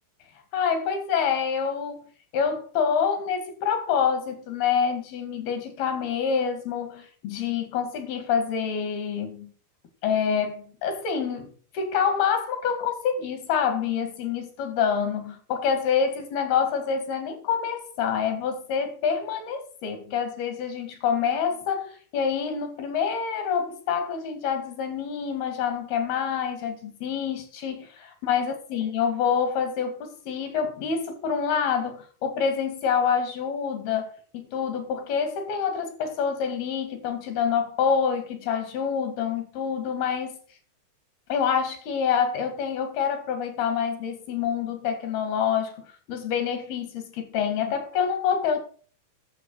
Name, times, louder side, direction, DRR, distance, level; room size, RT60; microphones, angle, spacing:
voice 1, 0.5-2.1 2.3-9.5 10.0-40.4 41.3-45.8 46.1-48.6, left 7 dB, 80° left, 4.1 m, -27 dB
12.0 x 7.5 x 6.4 m
omnidirectional pair, 4.3 m